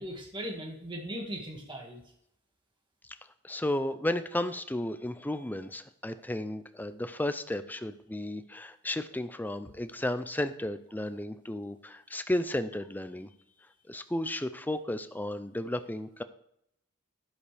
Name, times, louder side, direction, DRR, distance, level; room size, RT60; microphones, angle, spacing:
voice 1, 0.0-2.0, equal, 20° right, 0 dB, 2.1 m, -38 dB
voice 2, 3.4-13.3 13.9-16.2, left 1 dB, 10° left, 11 dB, 0.5 m, -33 dB
13.0 x 11.5 x 3.5 m, 0.76 s
head